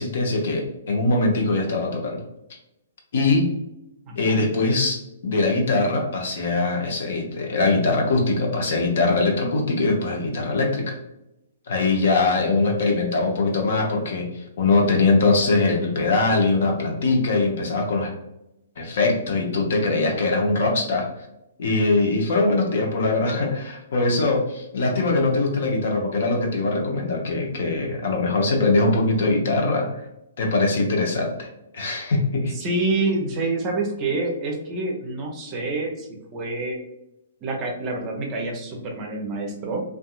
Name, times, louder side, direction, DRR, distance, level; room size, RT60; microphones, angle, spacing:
voice 1, 0.0-2.2 3.1-3.5 4.2-11.0 11.7-18.1 18.8-21.1 21.6-29.9 30.4-31.5 31.7-32.5, left 3 dB, 55° left, 1 dB, 0.6 m, -22 dB
voice 2, 4.0-4.4 32.5-36.8 37.4-39.8, right 2 dB, 30° right, 1 dB, 0.6 m, -27 dB
2.6 x 2.3 x 2.3 m, 0.86 s
figure-of-eight pair, 120°, 0 cm